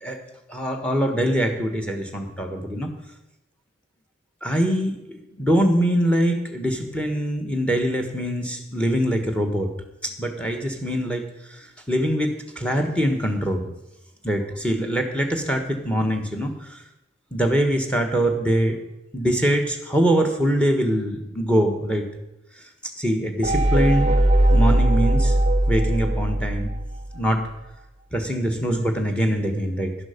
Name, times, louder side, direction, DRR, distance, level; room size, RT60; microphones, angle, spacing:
voice 1, 0.5-2.9 4.4-9.7 10.0-11.2 11.5-13.7 14.2-16.8 17.3-18.8 19.1-22.1 23.0-24.1 24.5-25.4 25.7-26.7 27.1-27.5 28.1-29.9, equal, 5° left, 5 dB, 1.4 m, -23 dB
sound 1, 23.4-27.2, right 1 dB, 30° right, 0.6 m, -19 dB
11.5 x 11.0 x 5.2 m, 0.89 s
head